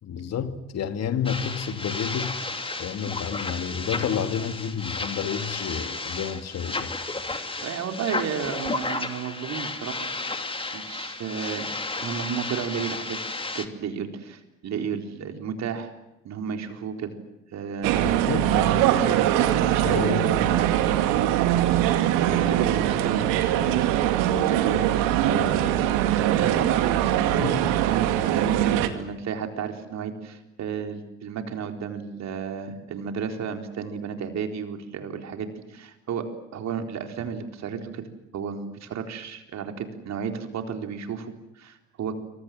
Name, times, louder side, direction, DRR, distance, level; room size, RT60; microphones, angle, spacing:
voice 1, 0.0-2.3 2.8-7.0 18.0-18.8 19.8-20.3 27.4-27.7, left 8 dB, 45° left, 2.5 m, -30 dB
sound 1, 1.2-13.7, left 3 dB, 15° left, 2.7 m, -33 dB
voice 2, 7.6-10.1 10.7-11.7 12.0-13.3 13.5-15.9 16.2-17.1 17.5-21.0 21.4-23.8 24.3-24.9 25.3-27.0 27.2-36.3 36.5-38.0 38.3-42.1, right 7 dB, 50° right, 4.1 m, -33 dB
sound 2, 17.8-28.9, right 12 dB, 65° right, 2.5 m, -22 dB
27.0 x 25.5 x 7.7 m
hypercardioid pair, 60°, 35 cm